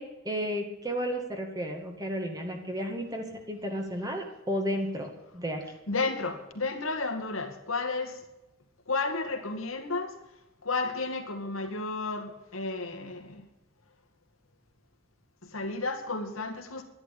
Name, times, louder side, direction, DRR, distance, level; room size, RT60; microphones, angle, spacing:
voice 1, 0.0-5.6, equal, 20° right, 3 dB, 2.0 m, -33 dB
voice 2, 5.9-8.2 8.9-10.1 10.6-13.4 15.4-16.8, left 3 dB, 75° left, 5 dB, 2.3 m, -32 dB
11.5 x 11.0 x 8.6 m, 0.96 s
head